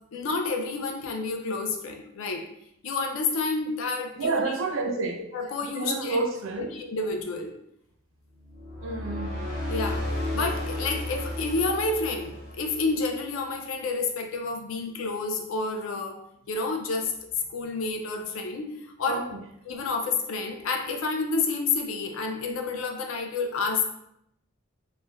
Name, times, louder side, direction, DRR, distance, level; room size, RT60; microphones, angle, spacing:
voice 1, 0.1-2.4 2.8-4.4 4.9-5.0 5.3-6.2 6.6-7.5 9.7-10.0 10.3-16.2 16.5-17.1 17.5-18.7 19.0-19.2 19.7-23.9, left 3 dB, 80° left, 0.4 m, -29 dB
voice 2, 4.2-5.2 5.6-6.8 8.8-9.4 19.1-19.4, right 3 dB, 70° right, 0.4 m, -29 dB
sound 1, 8.5-13.1, left 1 dB, 45° left, 0.8 m, -33 dB
3.1 x 2.1 x 2.2 m
head